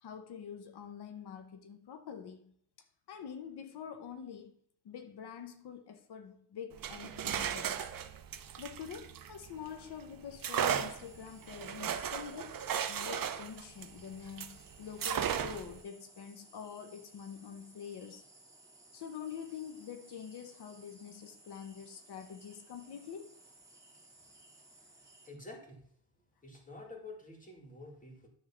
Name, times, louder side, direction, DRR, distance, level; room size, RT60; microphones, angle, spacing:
voice 1, 0.0-2.5 3.1-4.5 4.8-7.8 8.6-12.6 12.9-18.2 18.9-23.3, left 7 dB, 85° left, 1.0 m, -46 dB
sound 1, 6.7-9.8 10.4-14.6 15.0-15.8, right 8 dB, 60° right, 0.8 m, -36 dB
sound 2, 10.5-25.3, right 2 dB, 10° right, 2.5 m, -60 dB
voice 2, 25.3-25.8 26.4-28.3, left 2 dB, 20° left, 2.3 m, -49 dB
10.5 x 3.6 x 7.2 m
wide cardioid pair, 115°, 38 cm